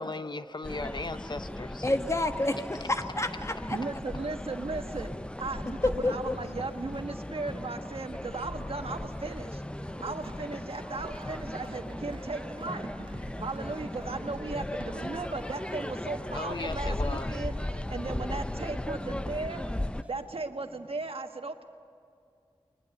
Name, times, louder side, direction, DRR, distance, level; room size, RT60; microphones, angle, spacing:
voice 1, 0.0-1.9 16.3-17.4, left 3 dB, 50° left, 11 dB, 0.8 m, -37 dB
sound 1, 0.6-20.0, left 1 dB, 10° left, 0.5 m, -37 dB
voice 2, 1.8-3.8 5.8-6.4, left 2 dB, 30° left, 7 dB, 1.2 m, -29 dB
sound 2, 3.7-21.1, right 1 dB, 15° right, 3.7 m, -52 dB
voice 3, 3.7-5.1 5.4-12.9 13.4-19.6 20.1-21.6, right 3 dB, 75° right, 6 dB, 1.4 m, -37 dB
sound 3, 9.8-19.3, right 3 dB, 60° right, 1.1 m, -50 dB
22.0 x 21.0 x 8.3 m, 2.4 s
wide cardioid pair, 75°, 10 cm